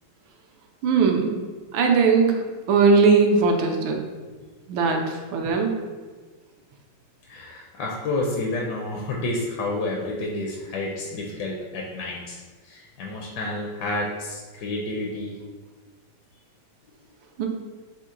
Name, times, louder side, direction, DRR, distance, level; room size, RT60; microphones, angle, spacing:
voice 1, 0.8-1.3 1.7-2.4 2.7-4.0 4.7-5.7 17.4-17.5, right 4 dB, 80° right, 3 dB, 1.3 m, -19 dB
voice 2, 7.3-15.4, left 2 dB, 70° left, -1 dB, 1.1 m, -30 dB
4.4 x 2.9 x 3.7 m, 1.4 s
omnidirectional pair, 2.2 m